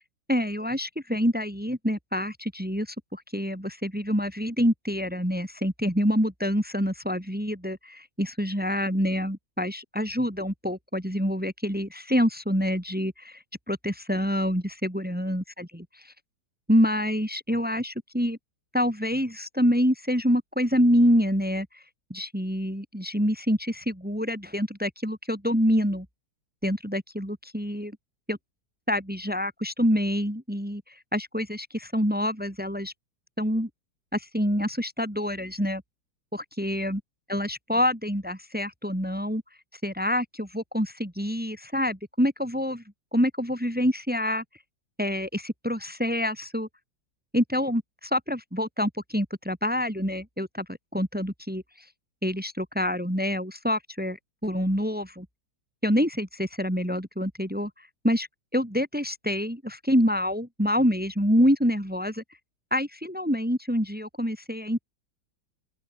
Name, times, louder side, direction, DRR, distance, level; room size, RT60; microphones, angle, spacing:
voice 1, 0.3-13.4 13.7-15.8 16.7-18.4 18.7-21.7 22.1-26.1 26.6-28.0 28.3-28.4 28.9-30.8 31.1-32.9 33.4-33.7 34.1-35.8 36.3-37.0 37.3-39.4 39.8-42.8 43.1-44.4 45.0-46.7 47.3-51.6 52.2-55.3 55.8-57.7 58.0-58.3 58.5-62.2 62.7-64.8, equal, 5° right, 2.7 m, -26 dB
open air
omnidirectional pair, 1.9 m